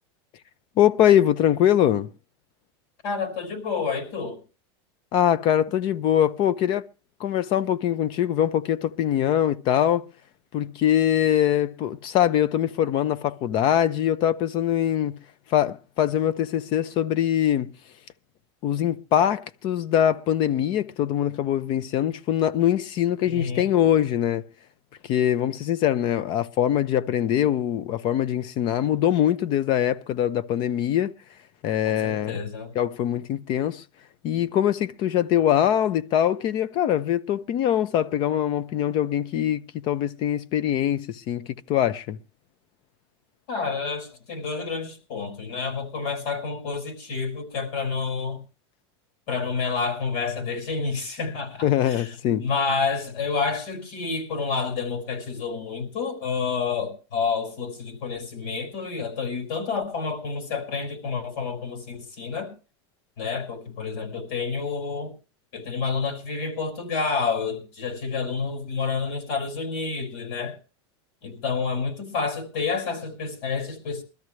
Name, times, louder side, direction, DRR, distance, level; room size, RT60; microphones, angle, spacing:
voice 1, 0.8-2.1 5.1-6.9 7.2-10.1 10.5-15.2 15.5-17.7 18.6-24.5 25.0-31.1 31.6-32.4 32.7-33.8 34.2-42.2 51.6-52.5, left 10 dB, 35° left, 0.7 m, -23 dB
voice 2, 3.0-4.4 23.3-23.7 31.8-32.7 43.5-48.4 49.3-52.0 52.4-62.5 63.2-65.1 65.5-70.6 71.2-74.0, left 5 dB, 60° left, 5.4 m, -29 dB
22.0 x 13.0 x 3.2 m
supercardioid pair, 165°, 14 cm